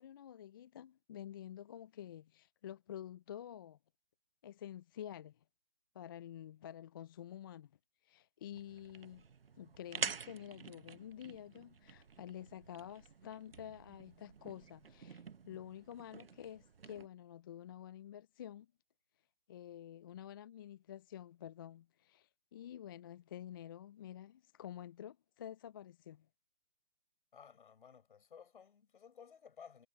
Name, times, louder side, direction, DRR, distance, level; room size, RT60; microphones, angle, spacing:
voice 1, 0.0-3.8 4.4-5.4 5.9-7.7 8.0-9.2 9.5-18.7 19.5-26.3, left 10 dB, 25° left, 0.4 m, -49 dB
sound 1, 8.5-17.1, right 6 dB, 75° right, 1.1 m, -48 dB
voice 2, 27.3-29.9, left 7 dB, 60° left, 6.0 m, -57 dB
figure-of-eight pair, 135°, 29 cm